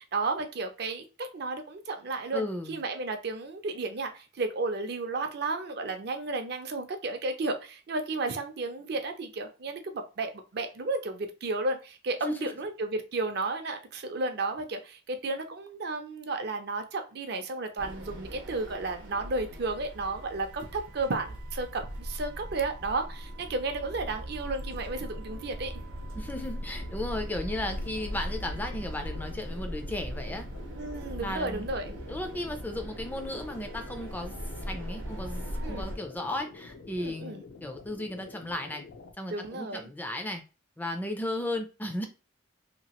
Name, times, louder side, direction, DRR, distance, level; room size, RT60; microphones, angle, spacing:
voice 1, 0.0-25.7 30.7-32.0 35.6-35.9 37.0-37.4 39.3-39.9, right 3 dB, 55° right, 0.5 m, -33 dB
voice 2, 2.3-2.8 12.2-12.5 26.1-30.5 31.2-31.7 32.1-34.4 34.7-38.8 39.2-40.4 40.8-42.1, left 1 dB, 10° left, 0.4 m, -35 dB
sound 1, 17.8-36.0, equal, 90° right, 0.8 m, -39 dB
sound 2, 26.0-39.1, left 3 dB, 75° left, 0.6 m, -49 dB
2.9 x 2.4 x 2.8 m
head